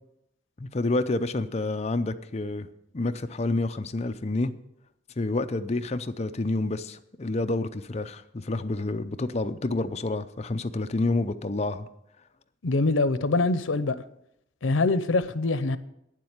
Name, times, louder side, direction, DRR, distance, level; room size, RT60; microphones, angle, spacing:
voice 1, 0.6-2.7 2.9-4.5 5.2-11.9, left 2 dB, 35° left, 0.6 m, -28 dB
voice 2, 12.6-14.0 14.6-15.8, left 3 dB, 85° left, 0.7 m, -24 dB
9.4 x 7.5 x 8.1 m
head